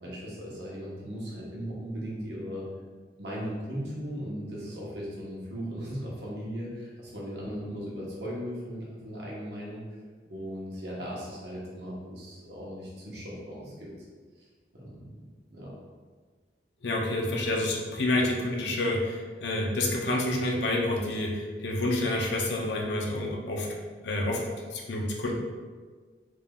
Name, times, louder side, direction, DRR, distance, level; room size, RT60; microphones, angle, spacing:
voice 1, 0.0-2.7 3.2-9.8 10.2-13.9 14.7-15.1 15.5-15.7, equal, 75° right, -5 dB, 1.1 m, -37 dB
voice 2, 16.8-24.4 24.7-25.3, left 1 dB, 80° left, 0 dB, 0.6 m, -28 dB
3.6 x 3.5 x 2.3 m, 1.5 s
head